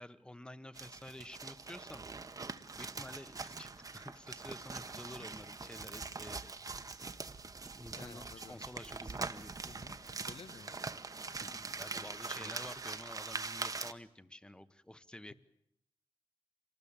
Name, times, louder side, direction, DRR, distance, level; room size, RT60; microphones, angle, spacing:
voice 1, 0.0-2.0 2.8-6.5 7.8-9.5 11.4-15.3, left 1 dB, 10° left, 13 dB, 1.0 m, -50 dB
sound 1, 0.7-13.9, right 4 dB, 40° right, 1.0 m, -43 dB
voice 2, 8.0-8.6 9.6-10.0 10.3-10.8 11.9-12.6, left 5 dB, 90° left, 9 dB, 1.6 m, -53 dB
26.5 x 19.5 x 8.8 m, 0.76 s
wide cardioid pair, 130°, 10 cm